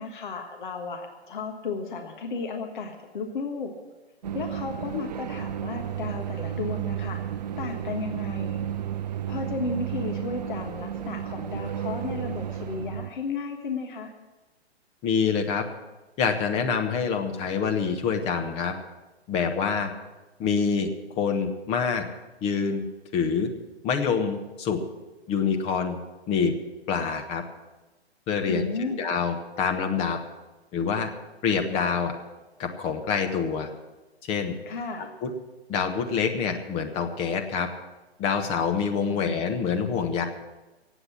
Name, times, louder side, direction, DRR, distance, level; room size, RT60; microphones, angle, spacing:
voice 1, 0.0-3.7 4.3-7.2 7.6-8.6 9.3-14.1 28.5-29.0 34.7-35.1 39.1-39.5, left 4 dB, 50° left, 4 dB, 1.5 m, -34 dB
sound 1, 4.2-13.1, right 9 dB, 40° right, 0.5 m, -32 dB
voice 2, 15.0-15.6 16.2-18.7 19.3-19.9 20.4-20.9 21.2-22.0 22.4-22.8 23.1-23.5 23.8-24.8 25.3-26.0 26.3-26.5 26.9-27.4 28.3-28.6 29.0-30.2 30.7-31.1 31.4-32.2 32.6-33.7 34.2-34.5 35.0-35.3 35.7-37.7 38.2-40.3, left 6 dB, 20° left, 5 dB, 1.1 m, -26 dB
17.5 x 8.2 x 7.2 m, 1.1 s
figure-of-eight pair, 125°, 33 cm